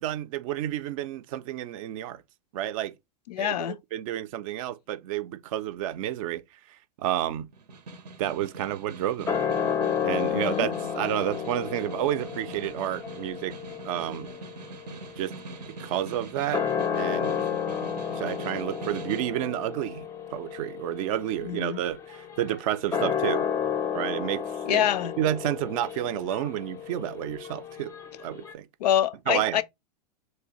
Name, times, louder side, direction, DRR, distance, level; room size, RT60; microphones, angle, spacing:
voice 1, 0.0-2.2 2.5-2.9 3.4-3.6 3.9-6.4 7.0-7.5 8.2-9.4 10.0-13.6 13.8-14.3 15.2-15.3 15.7-16.6 16.9-17.4 18.1-23.5 23.9-24.9 25.2-27.9 28.2-28.7 29.3-29.6, right 12 dB, 55° right, 0.4 m, -30 dB
voice 2, 3.3-3.8 10.3-10.7 21.4-21.8 24.7-25.2 28.8-29.6, left 11 dB, 75° left, 0.4 m, -26 dB
Snare drum, 7.5-19.4, right 3 dB, 85° right, 0.7 m, -43 dB
sound 1, 9.3-15.9 16.4-28.5, left 7 dB, 15° left, 0.4 m, -32 dB
3.2 x 2.7 x 2.9 m
hypercardioid pair, 110°, 21 cm